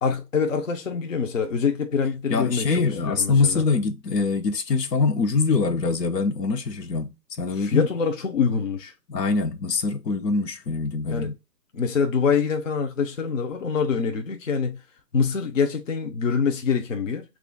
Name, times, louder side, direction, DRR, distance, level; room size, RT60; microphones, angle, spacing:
voice 1, 0.0-2.7 3.1-3.6 7.6-8.9 11.1-11.3 11.7-14.8 15.1-17.2, left 6 dB, 50° left, 0.6 m, -25 dB
voice 2, 2.3-7.9 9.1-11.3, left 4 dB, 75° left, 0.9 m, -24 dB
3.1 x 2.4 x 3.6 m
hypercardioid pair, 180°, 49 cm